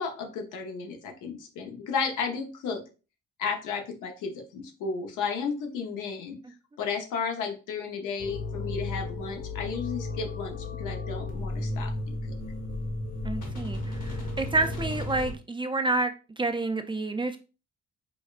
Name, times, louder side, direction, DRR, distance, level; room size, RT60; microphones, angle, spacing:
voice 1, 0.0-2.8 3.4-6.4 6.8-12.4, left 5 dB, 90° left, 0.8 m, -33 dB
sound 1, 8.2-15.3, left 2 dB, 55° left, 1.2 m, -34 dB
voice 2, 13.2-17.4, right 2 dB, 15° right, 0.3 m, -29 dB
5.0 x 2.2 x 2.4 m
cardioid pair, 90°, 30 cm